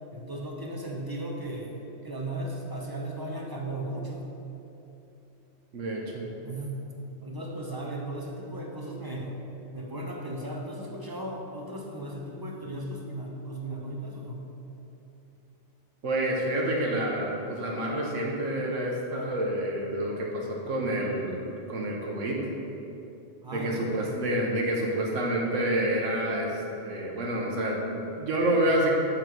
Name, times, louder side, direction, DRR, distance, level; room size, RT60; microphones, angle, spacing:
voice 1, 0.1-1.7 2.0-4.3 6.4-6.7 7.2-9.3 9.7-14.4 19.1-19.4 23.4-23.9, right 1 dB, 25° right, -1 dB, 0.5 m, -36 dB
voice 2, 5.7-6.3 16.0-22.4 23.5-28.9, right 1 dB, 90° right, -2 dB, 1.2 m, -28 dB
7.8 x 3.8 x 4.5 m, 2.9 s
omnidirectional pair, 1.3 m